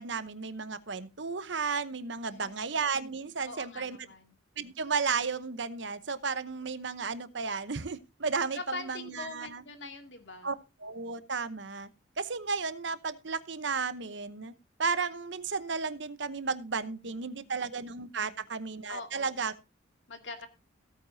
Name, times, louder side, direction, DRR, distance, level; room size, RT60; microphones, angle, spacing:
voice 1, 0.0-4.0 4.6-9.6 10.4-10.5 10.8-11.9 12.2-14.5 14.8-19.5, right 5 dB, 65° right, 14 dB, 0.9 m, -33 dB
voice 2, 2.3-2.6 3.5-4.2 8.6-10.5 17.3-17.5 18.9-19.3 20.1-20.5, left 3 dB, 65° left, 6 dB, 2.5 m, -43 dB
17.0 x 9.0 x 2.7 m, 0.27 s
head